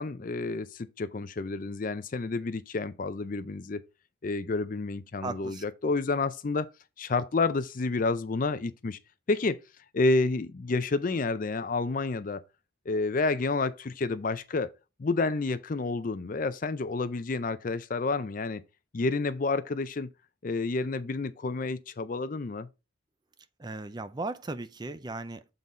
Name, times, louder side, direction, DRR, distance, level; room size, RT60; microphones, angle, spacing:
voice 1, 0.0-3.8 4.2-6.7 7.0-9.0 9.3-9.6 9.9-12.4 12.9-14.7 15.0-18.6 18.9-20.1 20.4-22.7, left 3 dB, 40° left, 0.4 m, -29 dB
voice 2, 5.2-5.7 23.6-25.5, right 2 dB, 20° right, 0.4 m, -37 dB
7.3 x 3.9 x 4.0 m
head